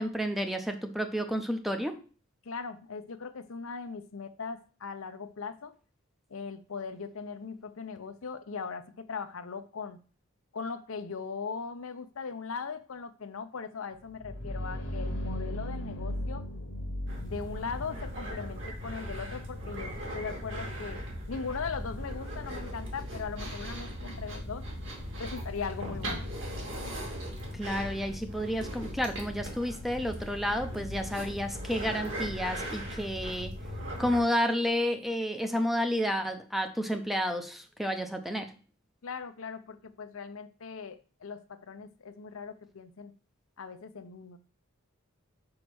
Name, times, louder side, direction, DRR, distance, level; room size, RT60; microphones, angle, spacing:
voice 1, 0.0-2.0 27.5-33.5 34.0-38.5, equal, ahead, 6 dB, 0.6 m, -31 dB
voice 2, 2.4-5.7 6.3-10.0 10.5-16.5 17.2-21.0 21.3-24.6 25.2-26.3 39.0-43.1 43.6-44.4, left 5 dB, 85° left, 10 dB, 0.7 m, -39 dB
sound 1, 14.0-25.6, left 1 dB, 60° left, 1.2 m, -40 dB
sound 2, 17.1-34.2, equal, 60° right, 2.5 m, -38 dB
5.2 x 4.8 x 6.1 m, 0.38 s
head